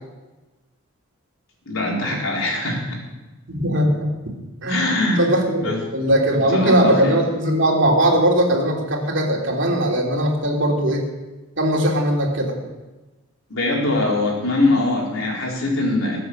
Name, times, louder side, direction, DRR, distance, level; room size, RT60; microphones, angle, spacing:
voice 1, 1.7-3.0 4.7-5.2 5.6-5.8 6.3-7.1 13.5-16.2, left 2 dB, 70° left, -2 dB, 4.1 m, -22 dB
voice 2, 3.5-4.1 4.6-4.9 5.2-11.1 11.6-12.5, right 1 dB, 60° right, -1 dB, 3.0 m, -19 dB
21.5 x 7.8 x 6.4 m, 1.1 s
head